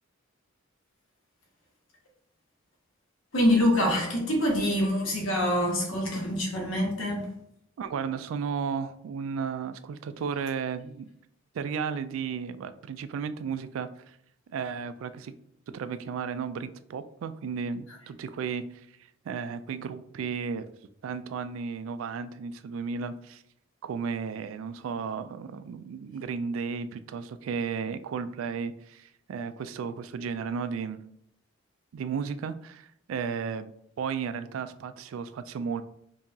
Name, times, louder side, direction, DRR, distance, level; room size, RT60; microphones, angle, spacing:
voice 1, 3.3-7.3, left 1 dB, 80° left, 1.1 m, -25 dB
voice 2, 7.8-11.1 11.5-14.2 14.5-15.3 15.7-18.9 19.3-20.7 21.0-23.4 23.8-31.0 31.9-33.7 34.0-35.8, right 6 dB, 80° right, 0.3 m, -34 dB
4.5 x 2.7 x 2.7 m
head